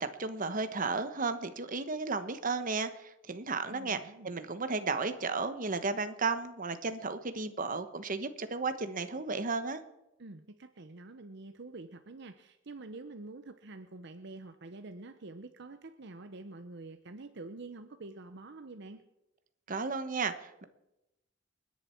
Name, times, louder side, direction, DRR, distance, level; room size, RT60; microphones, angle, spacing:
voice 1, 0.0-9.8 19.7-20.6, right 4 dB, 45° right, 10 dB, 1.2 m, -34 dB
voice 2, 3.7-4.3 10.2-19.0, right 2 dB, 60° right, 9 dB, 0.9 m, -47 dB
29.0 x 10.5 x 4.5 m, 0.91 s
head